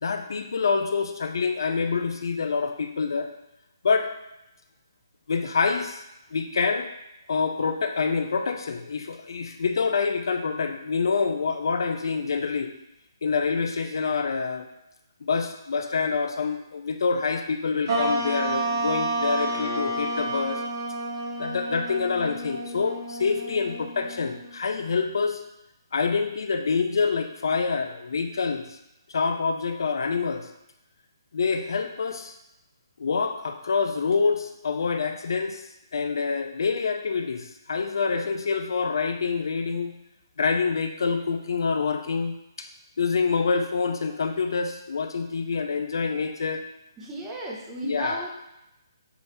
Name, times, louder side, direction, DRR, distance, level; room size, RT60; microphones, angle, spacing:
voice 1, 0.0-3.3 3.8-4.1 5.3-6.0 6.3-6.9 7.3-12.7 13.2-14.7 15.2-20.6 21.4-25.4 25.9-28.6 29.1-30.5 31.3-32.3 33.0-35.6 35.9-39.9 40.4-42.7 43.0-46.6 47.8-48.2, left 5 dB, 70° left, 6 dB, 0.5 m, -26 dB
sound 1, 17.9-24.6, right 2 dB, 50° right, 1.2 m, -30 dB
voice 2, 47.0-48.4, right 2 dB, 10° right, -3 dB, 0.9 m, -34 dB
6.1 x 2.6 x 3.3 m, 0.88 s
hypercardioid pair, 150°, 2 cm